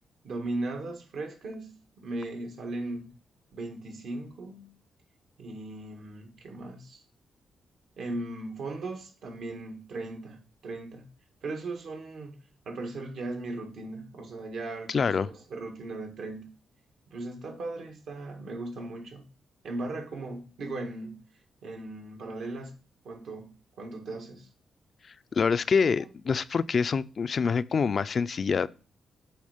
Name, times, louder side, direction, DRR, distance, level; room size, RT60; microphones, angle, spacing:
voice 1, 0.2-3.1 3.5-4.8 5.4-7.0 8.0-11.1 11.4-12.4 12.7-16.5 17.1-19.2 19.6-21.3 21.6-22.7 23.0-24.5, right 2 dB, 75° right, 1.8 m, -38 dB
voice 2, 14.9-15.3 25.3-28.7, left 5 dB, 50° left, 0.3 m, -26 dB
8.7 x 3.7 x 5.0 m
cardioid pair, 85°, 0 cm